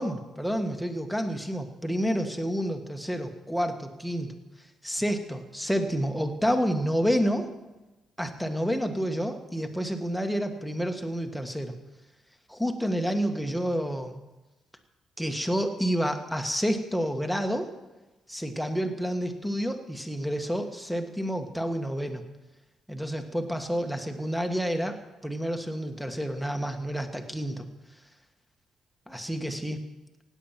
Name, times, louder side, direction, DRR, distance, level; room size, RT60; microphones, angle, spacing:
voice 1, 0.0-4.3 4.8-7.5 8.2-11.7 12.5-14.2 15.2-17.7 18.3-22.2 22.9-27.7 29.1-29.8, equal, ahead, 6 dB, 1.5 m, -29 dB
16.5 x 9.3 x 5.8 m, 1.1 s
cardioid pair, 90°, 0 cm